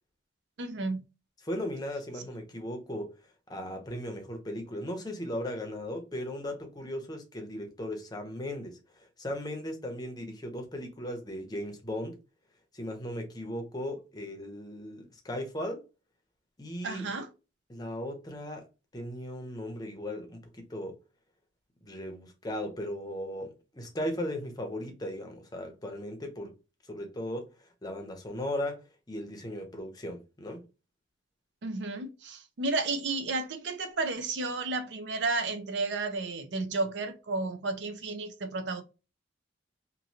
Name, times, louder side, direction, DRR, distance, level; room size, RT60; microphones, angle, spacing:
voice 1, 0.6-1.0 16.8-17.3 31.6-38.8, right 3 dB, 65° right, 0.5 m, -32 dB
voice 2, 1.4-3.1 3.5-12.2 12.7-15.8 16.6-17.1 17.7-18.7 18.9-21.0 21.8-26.5 26.9-30.6, left 1 dB, 20° left, 0.6 m, -37 dB
3.0 x 2.5 x 2.7 m
head